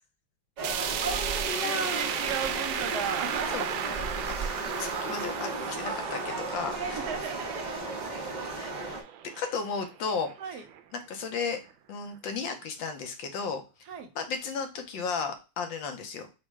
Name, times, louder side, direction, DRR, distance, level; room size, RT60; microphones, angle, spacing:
sound 1, 0.6-9.0, right 2 dB, 40° right, 0.6 m, -34 dB
sound 2, 0.6-10.8 11.2-11.3 11.7-11.8 12.6-12.7, right 9 dB, 90° right, 1.4 m, -36 dB
voice 1, 1.3-4.3 6.8-7.7 8.6-8.7 10.4-10.6 13.9-14.1, right 7 dB, 70° right, 7 dB, 1.0 m, -37 dB
voice 2, 4.8-7.0 8.6-8.7 9.4-10.6 10.9-11.6 11.9-13.6 14.1-16.3, left 5 dB, 80° left, 6 dB, 1.5 m, -34 dB
5.2 x 2.2 x 4.6 m, 0.30 s
omnidirectional pair, 2.1 m